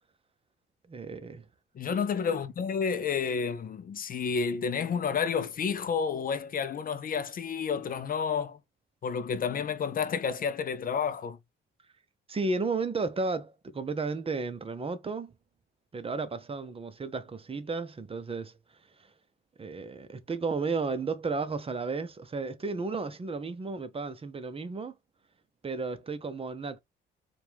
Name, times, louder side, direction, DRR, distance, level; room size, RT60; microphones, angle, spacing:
voice 1, 0.9-1.4 12.3-15.3 15.9-18.5 19.6-24.9 25.6-26.8, right 4 dB, 30° right, 0.7 m, -33 dB
voice 2, 1.8-8.6 9.0-11.4, left 6 dB, 45° left, 0.5 m, -30 dB
4.5 x 2.4 x 3.4 m
cardioid pair, 90°, 20 cm